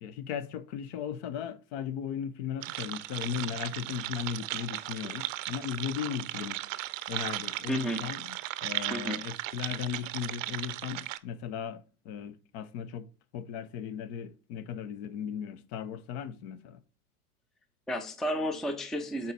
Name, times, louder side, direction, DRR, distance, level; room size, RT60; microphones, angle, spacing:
voice 1, 0.0-6.8 7.1-13.1 13.3-16.8, left 8 dB, 45° left, 0.7 m, -37 dB
sound 1, 2.6-11.2, right 16 dB, 55° right, 0.6 m, -36 dB
voice 2, 7.7-8.0 8.9-9.2 17.9-19.3, right 1 dB, ahead, 0.5 m, -32 dB
7.8 x 4.3 x 4.0 m
hypercardioid pair, 95°, 46 cm